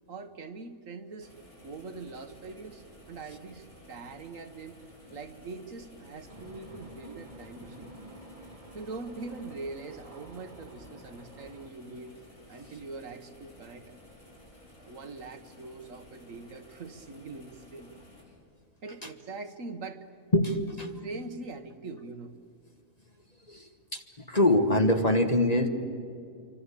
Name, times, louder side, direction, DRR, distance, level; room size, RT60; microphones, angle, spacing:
voice 1, 0.1-1.3 1.6-4.8 5.1-7.9 8.7-12.2 12.5-14.0 14.8-17.9 18.8-20.1 21.0-22.4, right 3 dB, 60° right, 9 dB, 1.6 m, -42 dB
sound 1, 1.2-18.2, left 1 dB, 60° left, 7.7 m, -54 dB
sound 2, 6.3-11.7, right 1 dB, 25° right, 1.6 m, -50 dB
voice 2, 20.3-21.0 23.5-24.0 24.3-25.7, left 1 dB, 25° left, 6 dB, 1.5 m, -24 dB
27.5 x 24.5 x 8.4 m, 2.5 s
omnidirectional pair, 1.6 m